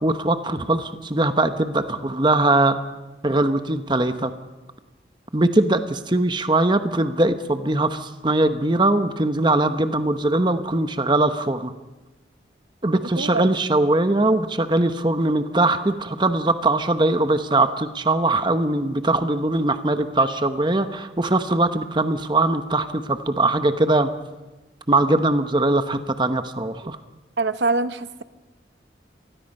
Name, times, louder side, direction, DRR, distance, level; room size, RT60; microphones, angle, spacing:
voice 1, 0.0-2.8 3.2-4.3 5.3-11.7 12.8-24.1 24.9-27.0, right 2 dB, 25° right, 9 dB, 0.9 m, -21 dB
voice 2, 13.2-13.5 26.8-26.9 27.4-28.2, right 3 dB, 75° right, 12 dB, 0.8 m, -24 dB
26.0 x 19.5 x 5.5 m, 1.2 s
head